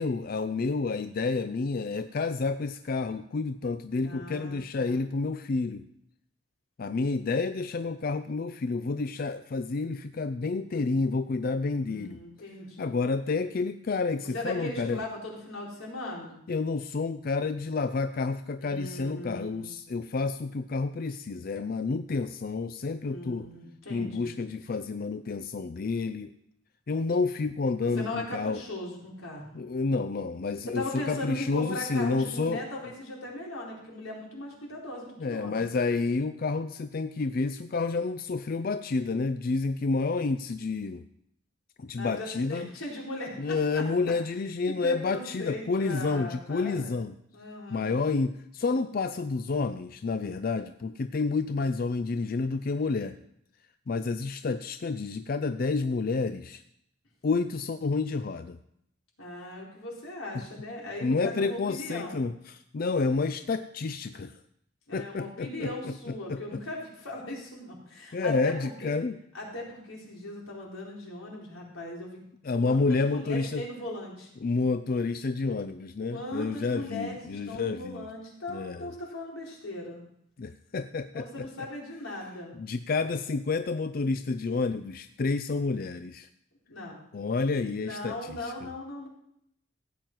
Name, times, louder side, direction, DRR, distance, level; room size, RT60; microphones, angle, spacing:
voice 1, 0.0-5.8 6.8-12.2 12.8-15.0 16.5-23.5 23.9-26.4 26.9-28.6 29.5-32.6 35.2-41.0 41.8-42.7 43.4-47.1 47.7-53.2 53.9-56.6 57.2-58.6 61.0-64.3 64.9-65.9 66.3-66.6 68.1-69.2 72.4-73.6 74.4-78.1 78.5-78.9 80.4-81.5 82.6-86.3 87.1-88.7, left 4 dB, 45° left, 10 dB, 0.4 m, -29 dB
voice 2, 4.0-5.1 11.8-13.0 14.2-16.4 18.6-19.7 23.1-24.4 28.0-29.5 30.6-35.7 41.9-43.8 44.7-46.9 47.3-47.9 59.2-62.2 64.9-68.9 69.3-72.2 72.6-74.3 76.1-80.0 81.1-82.6 86.7-87.0 87.8-89.1, left 1 dB, 85° left, -3 dB, 4.2 m, -38 dB
15.5 x 9.0 x 4.6 m, 0.74 s
head